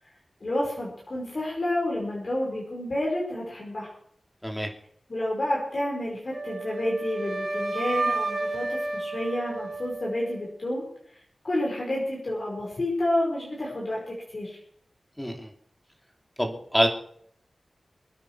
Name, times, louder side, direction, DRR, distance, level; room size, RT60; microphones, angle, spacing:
voice 1, 0.4-3.9 5.1-10.8 11.4-14.6, left 1 dB, 50° left, -3 dB, 5.0 m, -29 dB
Wind instrument woodwind instrument, 6.3-10.4, right 2 dB, 55° right, 3.6 m, -31 dB
voice 2, 15.2-15.5 16.4-16.9, equal, 5° left, 2 dB, 3.0 m, -25 dB
25.0 x 9.5 x 4.8 m, 0.63 s
wide cardioid pair, 65°, 0 cm